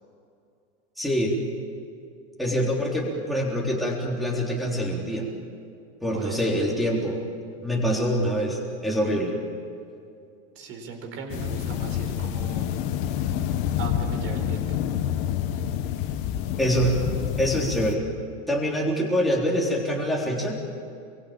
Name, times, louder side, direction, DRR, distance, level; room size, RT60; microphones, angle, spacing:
voice 1, 1.0-1.5 2.4-5.3 6.0-7.2 7.6-9.3 16.6-17.0 17.4-18.0 18.5-20.6, equal, ahead, -4 dB, 3.6 m, -25 dB
voice 2, 6.1-6.5 10.5-12.7 13.8-14.8, right 5 dB, 35° right, 3 dB, 4.7 m, -37 dB
sound 1, 11.3-17.9, left 10 dB, 50° left, 1.6 m, -28 dB
27.5 x 23.0 x 8.8 m, 2.5 s
supercardioid pair, 160°, 35 cm